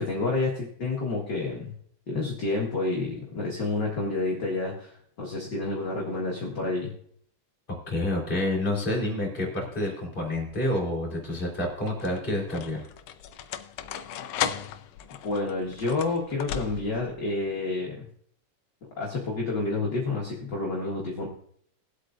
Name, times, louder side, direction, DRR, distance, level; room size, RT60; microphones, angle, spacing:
voice 1, 0.0-1.7 2.1-6.9 15.2-18.1 19.0-21.3, left 3 dB, 40° left, -4 dB, 2.0 m, -29 dB
voice 2, 7.9-12.8, left 1 dB, 15° left, -2 dB, 3.2 m, -28 dB
sound 1, 10.3-10.8 11.6-17.1, left 9 dB, 80° left, 1.4 m, -36 dB
20.5 x 8.1 x 2.7 m, 0.64 s
omnidirectional pair, 3.5 m